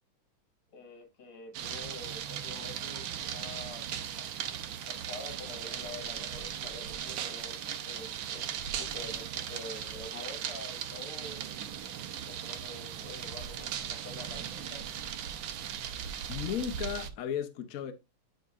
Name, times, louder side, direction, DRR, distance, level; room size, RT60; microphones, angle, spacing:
voice 1, 0.7-4.3 4.9-8.5 8.8-11.4 12.2-14.8, left 2 dB, 80° left, 2.7 m, -47 dB
sound 1, 1.5-17.1, right 9 dB, 70° right, 1.4 m, -38 dB
voice 2, 16.3-17.9, left 9 dB, 55° left, 1.0 m, -35 dB
9.3 x 5.1 x 2.4 m
omnidirectional pair, 2.4 m